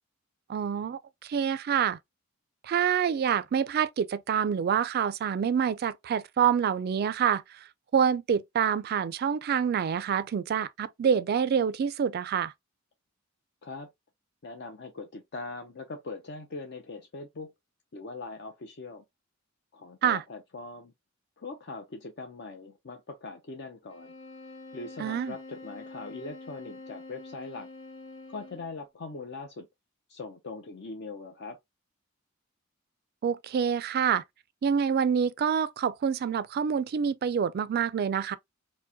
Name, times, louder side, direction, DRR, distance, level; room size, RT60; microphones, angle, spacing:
voice 1, 0.5-2.0 2.6-7.7 7.9-12.5 20.0-20.2 25.0-25.4 33.2-34.2 34.6-38.4, right 7 dB, 50° right, 0.3 m, -27 dB
voice 2, 14.4-17.5 17.9-19.0 19.7-20.9 21.4-24.1 24.7-27.7 28.3-29.7 30.1-31.6, left 3 dB, 55° left, 0.6 m, -41 dB
sound 1, 23.9-28.8, left 2 dB, 80° left, 1.1 m, -46 dB
4.5 x 2.1 x 2.6 m
head